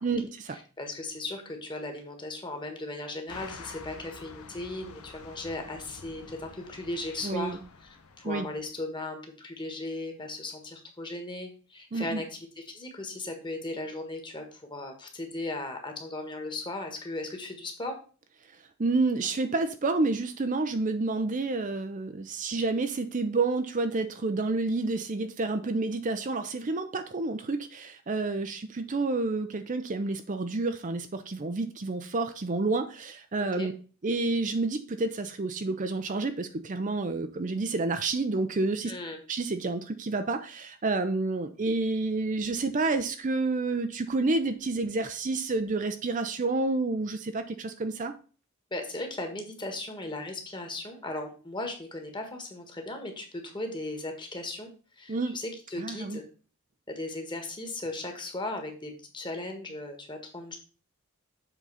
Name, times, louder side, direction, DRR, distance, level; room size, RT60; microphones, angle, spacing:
voice 1, 0.0-0.6 7.2-7.6 8.2-8.5 11.9-12.2 18.8-33.7 34.0-38.9 39.3-48.1 55.1-55.3 55.8-56.2, right 3 dB, 35° right, 8 dB, 0.5 m, -29 dB
voice 2, 0.5-18.0 33.4-33.7 38.8-39.2 48.7-54.7 55.0-56.3 56.9-60.6, left 2 dB, 20° left, 4 dB, 1.5 m, -37 dB
sound 1, 3.3-8.7, left 4 dB, 85° left, 1.0 m, -48 dB
7.4 x 3.9 x 5.6 m, 0.38 s
head